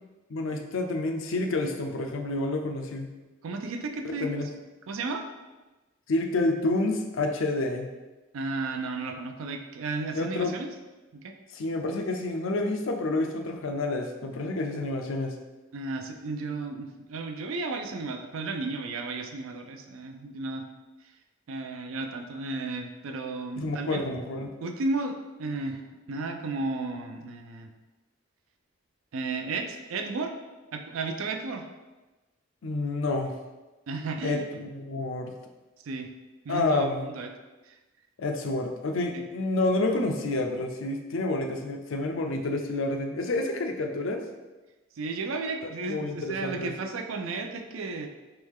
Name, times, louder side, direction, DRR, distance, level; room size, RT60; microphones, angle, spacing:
voice 1, 0.3-3.1 4.0-4.5 6.1-7.9 10.1-10.5 11.5-15.4 23.6-24.5 32.6-33.4 34.2-35.4 36.5-37.0 38.2-44.2 45.6-46.7, left 2 dB, 70° left, 4 dB, 0.5 m, -29 dB
voice 2, 3.4-4.3 4.9-5.3 8.3-10.7 11.1-11.3 15.7-20.6 21.5-24.0 24.6-25.8 26.1-27.7 29.1-30.3 30.7-31.7 33.9-34.5 35.9-36.1 36.4-37.3 37.7-37.8 39.1-39.2 45.0-48.1, right 3 dB, 85° right, 5 dB, 0.4 m, -33 dB
3.4 x 3.1 x 3.5 m, 1.1 s
head